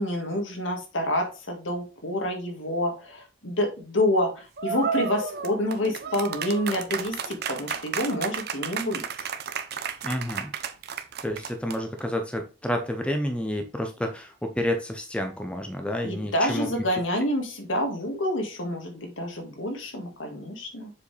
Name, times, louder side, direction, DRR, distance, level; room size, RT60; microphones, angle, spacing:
voice 1, 0.0-9.0 16.0-20.9, left 1 dB, 75° left, 2 dB, 1.9 m, -28 dB
sound 1, 4.6-12.0, right 6 dB, 55° right, 0.7 m, -32 dB
voice 2, 10.0-10.5 11.2-16.7, left 1 dB, 5° left, 4 dB, 0.7 m, -29 dB
7.0 x 4.8 x 3.3 m, 0.33 s
head